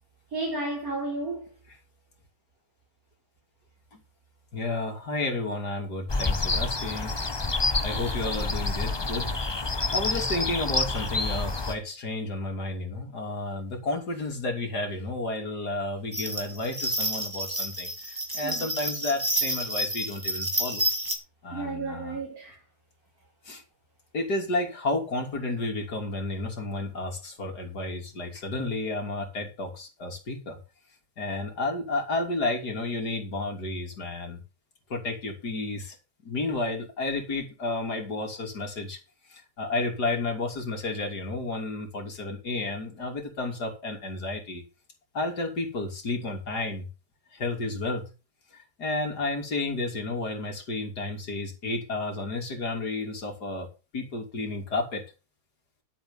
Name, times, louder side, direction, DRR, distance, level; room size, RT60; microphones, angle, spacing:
voice 1, 0.3-1.5 18.4-18.7 21.5-22.6, right 2 dB, 60° right, 4.6 m, -32 dB
voice 2, 4.5-7.1 7.8-9.4 9.9-20.8 21.4-22.2 23.5-23.6 24.1-30.6 31.2-34.4 34.9-36.0 36.3-39.0 39.3-44.6 45.1-46.9 47.3-48.1 48.5-53.7 53.9-55.1, left 2 dB, 75° left, 3.6 m, -31 dB
sound 1, 6.1-11.7, left 3 dB, 20° left, 0.7 m, -28 dB
sound 2, 16.1-21.2, right 1 dB, 10° right, 2.6 m, -30 dB
11.5 x 8.4 x 5.5 m
omnidirectional pair, 1.7 m